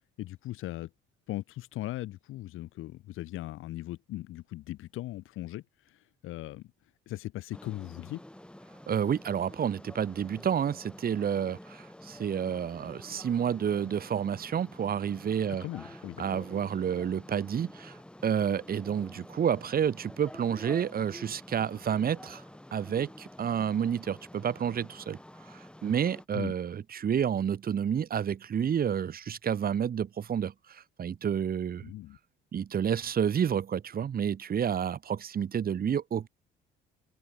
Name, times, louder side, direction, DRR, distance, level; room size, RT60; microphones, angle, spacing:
voice 1, 0.2-0.9 1.3-6.7 7.1-8.2 15.6-16.4 26.3-26.5 31.8-32.2, left 16 dB, 80° left, 2.2 m, -39 dB
sound 1, 7.5-26.2, left 1 dB, 5° left, 3.8 m, -49 dB
voice 2, 8.9-15.6 16.2-22.4 22.7-25.2 25.5-31.8 32.5-36.3, right 8 dB, 45° right, 1.7 m, -30 dB
open air
cardioid pair, 90°, 21 cm